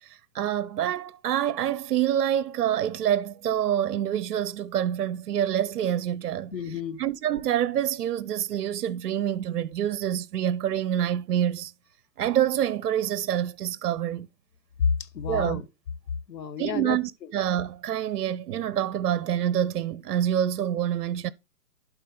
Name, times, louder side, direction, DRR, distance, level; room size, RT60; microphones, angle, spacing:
voice 1, 0.0-6.5 7.0-11.7 12.2-14.3 15.3-15.6 16.6-21.3, right 10 dB, 65° right, 0.7 m, -26 dB
voice 2, 6.5-7.0 14.8-15.7 16.3-17.0, left 6 dB, 85° left, 1.4 m, -29 dB
11.5 x 4.4 x 3.8 m
hypercardioid pair, 160°, 49 cm